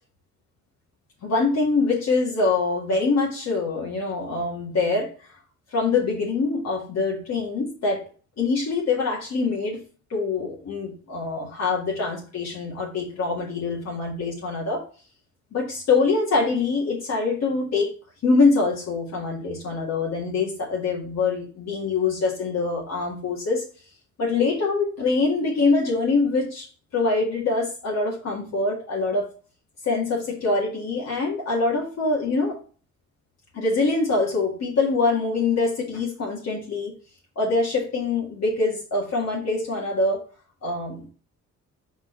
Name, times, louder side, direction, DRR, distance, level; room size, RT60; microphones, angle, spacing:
voice 1, 1.2-5.1 5.7-8.0 8.4-9.8 10.1-14.8 15.5-17.9 18.2-23.7 24.2-26.7 26.9-29.2 29.8-32.6 33.5-37.0 37.4-40.2 40.6-41.1, left 3 dB, 60° left, -2 dB, 2.0 m, -24 dB
4.6 x 4.6 x 4.4 m, 0.38 s
cardioid pair, 90°, 30 cm